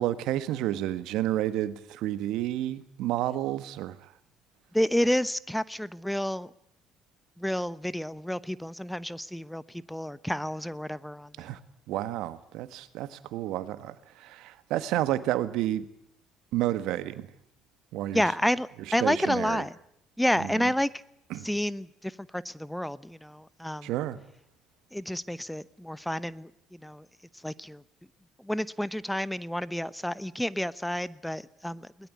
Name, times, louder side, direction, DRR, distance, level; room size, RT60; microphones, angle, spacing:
voice 1, 0.0-4.0 11.4-11.6 11.9-15.9 16.5-17.3 17.9-18.3 18.8-19.6 20.4-20.7 21.3-21.5 23.8-24.2, right 13 dB, 70° right, 13 dB, 1.5 m, -30 dB
voice 2, 4.7-6.5 7.4-9.6 9.9-11.3 18.1-18.7 18.9-19.7 20.2-20.9 21.4-21.9 22.3-23.9 24.9-26.5 26.8-27.0 27.4-27.8 28.5-31.9, equal, 5° left, 18 dB, 0.9 m, -29 dB
21.5 x 20.0 x 9.7 m, 0.73 s
hypercardioid pair, 60°, 0 cm